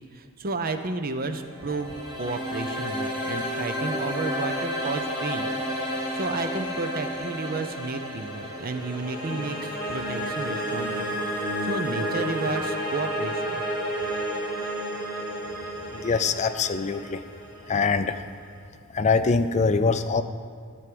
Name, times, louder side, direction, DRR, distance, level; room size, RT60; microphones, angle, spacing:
voice 1, 0.1-5.5 5.9-11.1 11.3-13.6, right 3 dB, 40° right, 8 dB, 0.6 m, -32 dB
sound 1, 1.3-18.4, equal, 20° right, 2.3 m, -31 dB
voice 2, 15.9-17.2 17.7-18.2 18.9-20.2, left 4 dB, 30° left, 10 dB, 0.4 m, -23 dB
13.0 x 4.7 x 7.8 m, 2.1 s
head